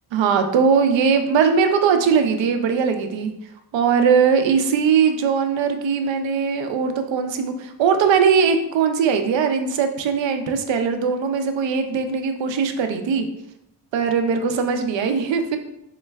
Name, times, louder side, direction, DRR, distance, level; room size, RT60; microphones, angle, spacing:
voice 1, 0.1-3.3 3.7-13.3 13.9-15.6, right 6 dB, 70° right, 7 dB, 0.6 m, -20 dB
3.8 x 2.2 x 3.3 m, 0.84 s
cardioid pair, 75°, 47 cm